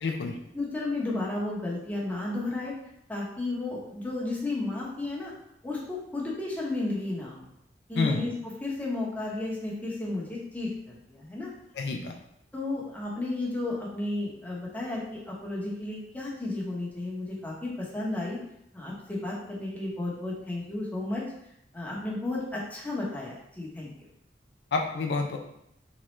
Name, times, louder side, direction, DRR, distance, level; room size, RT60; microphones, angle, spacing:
voice 1, 0.0-0.4 8.0-8.2 11.8-12.2 24.7-25.4, left 4 dB, 70° left, 3 dB, 0.4 m, -28 dB
voice 2, 0.5-2.7 3.1-5.3 5.6-7.5 7.9-8.3 8.6-11.5 12.5-18.4 18.7-21.2 21.7-23.9, left 2 dB, 10° left, -5 dB, 0.9 m, -33 dB
3.6 x 3.1 x 3.1 m, 0.77 s
head